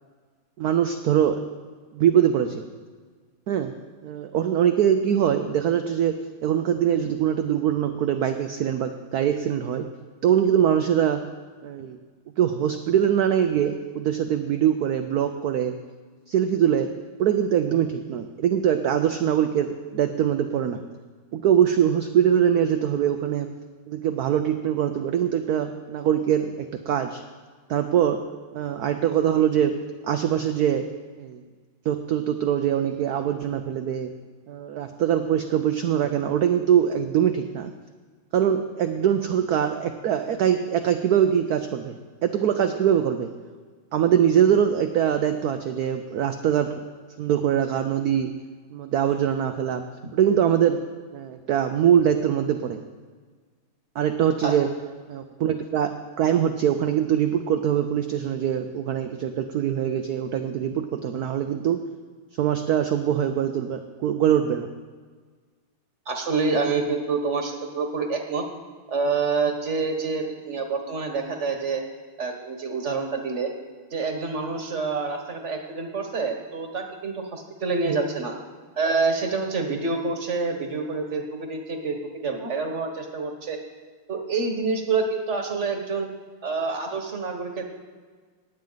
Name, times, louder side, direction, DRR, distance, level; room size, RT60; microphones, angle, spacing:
voice 1, 0.6-1.4 1.9-2.6 3.5-3.7 4.0-9.9 10.2-11.2 11.6-12.0 12.4-15.7 16.3-16.9 17.2-20.8 21.3-23.5 23.9-27.2 27.7-28.2 28.5-29.7 30.1-30.8 31.2-31.4 31.9-34.1 34.5-37.7 38.3-41.9 42.2-43.3 43.9-46.8 47.2-48.3 48.7-49.8 50.1-50.8 51.1-52.8 54.0-54.7 55.1-55.9 56.2-61.8 62.4-64.7, right 9 dB, 90° right, 8 dB, 0.8 m, -23 dB
voice 2, 66.1-68.4 68.9-71.8 72.2-73.5 73.9-78.4 78.8-83.6 84.1-86.1 86.4-87.6, right 4 dB, 40° right, 4 dB, 1.2 m, -27 dB
17.5 x 8.7 x 3.9 m, 1.5 s
omnidirectional pair, 2.3 m